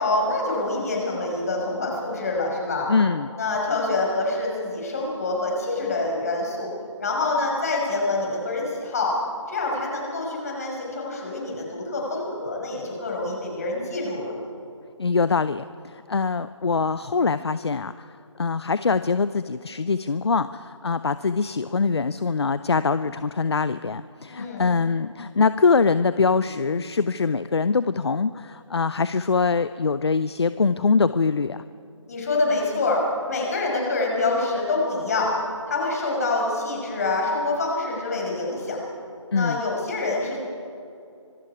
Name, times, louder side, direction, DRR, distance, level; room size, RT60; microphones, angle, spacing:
voice 1, 0.0-2.9 3.4-6.7 7.0-9.1 9.5-14.3 24.3-24.7 32.1-33.0 33.3-35.3 35.7-38.8 39.3-40.4, left 2 dB, 30° left, -1 dB, 5.9 m, -26 dB
voice 2, 2.9-3.3 15.0-31.6 39.3-39.6, left 4 dB, 55° left, 14 dB, 0.6 m, -23 dB
sound 1, 26.4-27.4, left 1 dB, ahead, 6.3 m, -44 dB
25.5 x 22.5 x 4.9 m, 2.6 s
figure-of-eight pair, 170°, 16 cm